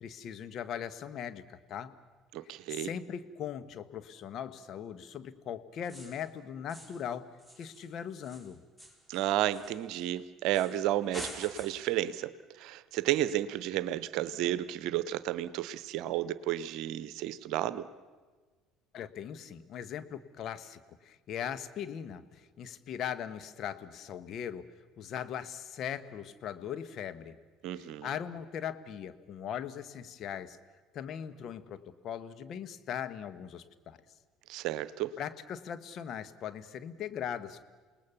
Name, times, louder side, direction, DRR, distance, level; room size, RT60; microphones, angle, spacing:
voice 1, 0.0-2.0 2.4-7.3 7.6-8.6 18.9-24.6 25.0-27.4 27.7-30.6 30.9-34.0 35.2-37.6, left 8 dB, 55° left, 12 dB, 1.3 m, -40 dB
voice 2, 2.3-2.9 9.1-12.3 12.6-17.9 27.6-28.1 34.5-35.1, right 13 dB, 65° right, 16 dB, 0.8 m, -32 dB
sound 1, 5.8-6.3 6.7-7.1 7.4-10.1 10.5-10.8 11.1-12.0, right 1 dB, 10° left, 5.0 m, -47 dB
28.0 x 19.0 x 7.1 m, 1.4 s
hypercardioid pair, 60°, 0 cm